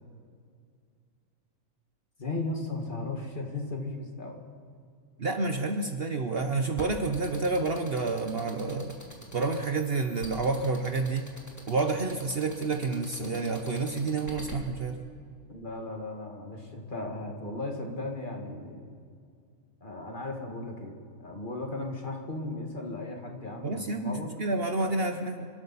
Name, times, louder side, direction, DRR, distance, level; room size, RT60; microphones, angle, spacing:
voice 1, 2.2-4.4 15.5-18.9 19.8-20.9 21.2-24.3, left 2 dB, 35° left, 2 dB, 2.0 m, -36 dB
voice 2, 5.2-9.0 9.3-11.3 11.7-15.0 23.6-25.5, right 3 dB, 45° right, 5 dB, 1.1 m, -29 dB
sound 1, 6.8-14.5, equal, 10° left, 2.4 m, -45 dB
27.0 x 13.0 x 4.2 m, 2.3 s
omnidirectional pair, 1.5 m